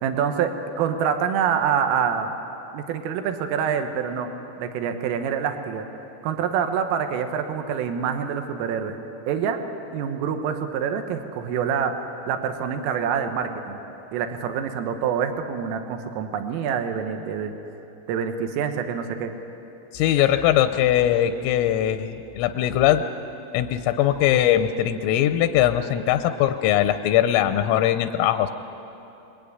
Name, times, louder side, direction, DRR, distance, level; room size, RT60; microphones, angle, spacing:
voice 1, 0.0-2.3 2.7-4.3 4.6-5.9 6.2-9.0 9.3-9.6 9.9-13.8 14.1-17.6 18.1-19.3, right 7 dB, 80° right, 6 dB, 3.9 m, -26 dB
voice 2, 19.9-23.0 23.5-28.5, left 11 dB, 85° left, 9 dB, 3.4 m, -21 dB
26.5 x 21.5 x 9.5 m, 2.9 s
omnidirectional pair, 5.8 m